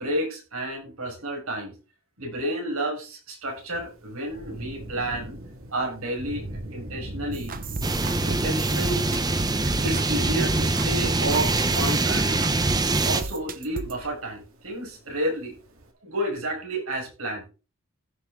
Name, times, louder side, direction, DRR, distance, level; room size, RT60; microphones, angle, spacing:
voice 1, 0.0-1.7 2.2-5.4 5.7-7.5 8.2-9.1 9.8-12.3 13.0-15.6 16.0-17.4, right 1 dB, 90° right, 1 dB, 5.6 m, -31 dB
Thunder / Rain, 3.5-15.9, right 1 dB, 70° right, 2.5 m, -42 dB
sound 1, 7.3-14.0, right 3 dB, 40° right, 1.0 m, -36 dB
sound 2, 7.8-13.2, right 2 dB, 20° right, 0.9 m, -24 dB
15.5 x 6.3 x 3.8 m, 0.33 s
head